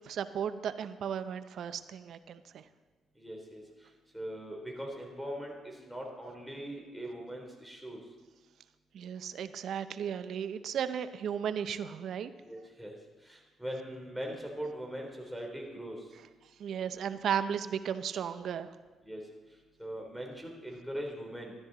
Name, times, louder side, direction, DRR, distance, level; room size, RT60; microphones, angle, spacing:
voice 1, 0.1-2.6 8.9-12.3 16.6-18.7, right 8 dB, 70° right, 12 dB, 0.6 m, -35 dB
voice 2, 3.2-3.9 4.1-8.0 12.5-12.9 13.2-16.1 19.0-19.2 19.8-21.5, equal, ahead, -1 dB, 3.2 m, -41 dB
13.0 x 12.0 x 4.0 m, 1.3 s
cardioid pair, 90°, 0 cm